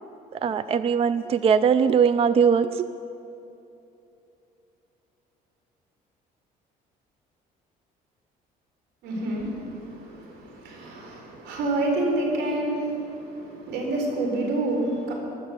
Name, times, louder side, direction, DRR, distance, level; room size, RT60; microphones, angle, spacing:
voice 1, 0.3-2.9, right 6 dB, 35° right, 13 dB, 0.4 m, -21 dB
voice 2, 9.0-15.1, right 2 dB, 85° right, 1 dB, 4.0 m, -28 dB
15.5 x 12.5 x 7.3 m, 2.8 s
cardioid pair, 110°, 17 cm